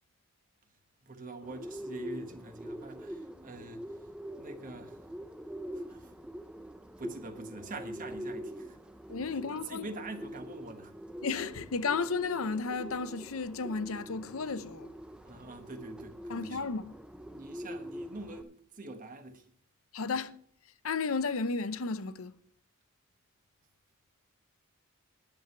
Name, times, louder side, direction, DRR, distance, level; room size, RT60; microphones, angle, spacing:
voice 1, 1.0-3.9 4.4-5.0 5.9-6.1 6.6-6.7 7.0-8.8 9.3-10.9 15.2-16.7 17.3-19.4, right 2 dB, 40° right, 1.2 m, -45 dB
Bird, 1.4-18.4, equal, 5° right, 0.5 m, -44 dB
voice 2, 9.1-9.9 11.2-14.9 16.3-16.9 19.9-20.4 20.8-22.3, left 4 dB, 70° left, 0.7 m, -33 dB
10.5 x 7.8 x 6.6 m
head